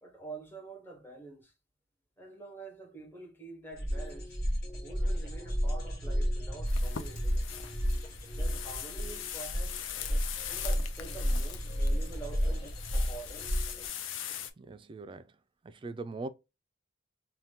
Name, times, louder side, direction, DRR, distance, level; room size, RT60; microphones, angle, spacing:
voice 1, 0.0-1.5 2.2-4.4 4.8-7.5 8.4-9.9 10.5-13.3, right 4 dB, 10° left, 1.0 m, -47 dB
sound 1, 3.7-13.9, equal, 55° left, 1.1 m, -32 dB
sound 2, 6.7-14.5, left 9 dB, 80° left, 0.5 m, -41 dB
voice 2, 14.6-15.3 15.6-16.3, right 3 dB, 25° right, 0.3 m, -41 dB
2.8 x 2.2 x 3.3 m
head